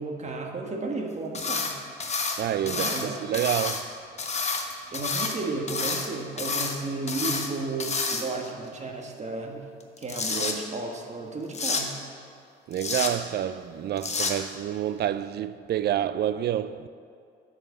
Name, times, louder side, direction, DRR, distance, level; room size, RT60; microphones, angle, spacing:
voice 1, 0.0-1.7 2.6-3.2 4.9-9.6 10.0-11.9, right 3 dB, 35° right, 1.4 m, -33 dB
sound 1, 1.3-1.7 2.0-3.1 3.3-3.8 4.2-5.4 5.7-6.1 6.4-6.8 7.1-7.5 7.8-8.5 9.8-10.5 11.5-11.8 12.7-13.1 14.0-14.3, left 4 dB, 35° left, 1.1 m, -29 dB
voice 2, 2.4-3.9 12.7-16.9, right 11 dB, 55° right, 0.4 m, -28 dB
10.5 x 4.9 x 6.6 m
cardioid pair, 90°, 20 cm